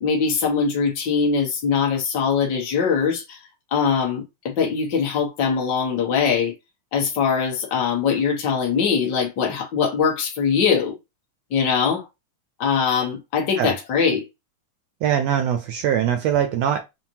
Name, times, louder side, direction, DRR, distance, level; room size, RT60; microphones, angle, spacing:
voice 1, 0.0-3.4 3.7-6.5 6.9-11.0 11.5-12.1 12.6-14.3, left 6 dB, 55° left, 1.2 m, -22 dB
voice 2, 15.0-16.8, right 9 dB, 80° right, 1.4 m, -22 dB
5.7 x 2.1 x 2.9 m
omnidirectional pair, 3.4 m